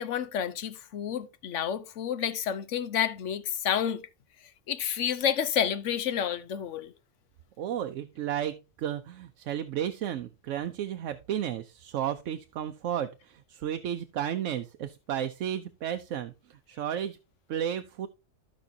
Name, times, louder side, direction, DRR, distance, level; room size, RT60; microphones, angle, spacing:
voice 1, 0.0-4.0 4.7-6.9, left 9 dB, 75° left, 1.1 m, -30 dB
voice 2, 7.6-17.2 17.5-18.1, right 10 dB, 80° right, 1.0 m, -33 dB
14.5 x 5.2 x 2.7 m
omnidirectional pair, 1.3 m